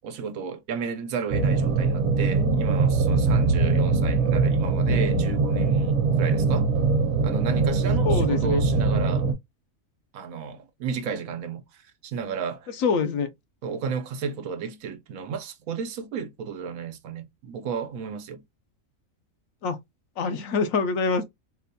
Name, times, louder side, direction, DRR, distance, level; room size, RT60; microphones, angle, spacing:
voice 1, 0.0-6.7 7.2-9.3 10.1-12.7 13.6-18.4, right 6 dB, 85° right, 1.1 m, -33 dB
sound 1, 1.3-9.3, right 4 dB, 60° right, 1.1 m, -22 dB
voice 2, 7.8-8.6 12.7-13.3 19.6-19.8 20.2-21.2, left 5 dB, 80° left, 1.1 m, -25 dB
4.1 x 2.2 x 2.7 m
omnidirectional pair, 1.4 m